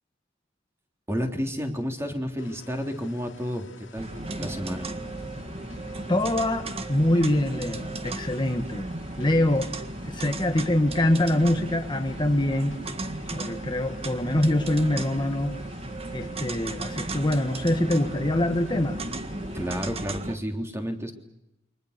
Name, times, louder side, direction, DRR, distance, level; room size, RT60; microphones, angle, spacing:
voice 1, 1.1-4.1 4.4-4.9 19.5-21.1, equal, 15° right, 3 dB, 3.5 m, -31 dB
sound 1, 2.4-19.9, left 2 dB, 80° left, 3.0 m, -46 dB
sound 2, 4.0-20.4, right 2 dB, 30° right, 1.7 m, -35 dB
voice 2, 6.1-8.9 9.2-9.7 10.1-12.8 13.3-15.6 16.1-19.0, left 1 dB, 25° left, 4 dB, 1.5 m, -24 dB
29.0 x 24.5 x 6.7 m, 0.88 s
head